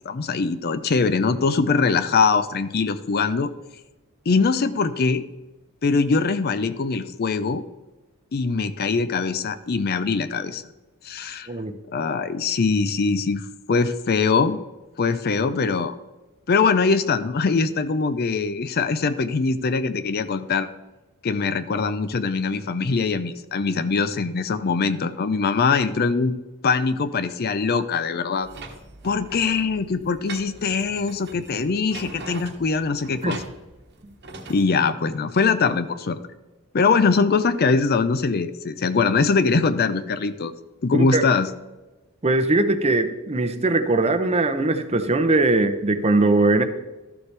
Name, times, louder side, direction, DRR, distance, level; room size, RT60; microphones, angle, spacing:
voice 1, 0.0-3.5 4.3-5.2 5.8-7.6 8.3-10.6 11.0-11.5 11.9-14.6 15.0-15.9 16.5-20.7 21.2-26.4 26.6-28.5 29.0-33.4 34.5-36.2 36.7-40.5 40.8-41.5, left 4 dB, 45° left, 12 dB, 0.5 m, -22 dB
sound 1, 28.4-34.6, right 3 dB, 50° right, 1.2 m, -41 dB
voice 2, 42.2-46.6, right 2 dB, 30° right, 8 dB, 0.7 m, -20 dB
13.0 x 6.9 x 3.3 m, 1.1 s
head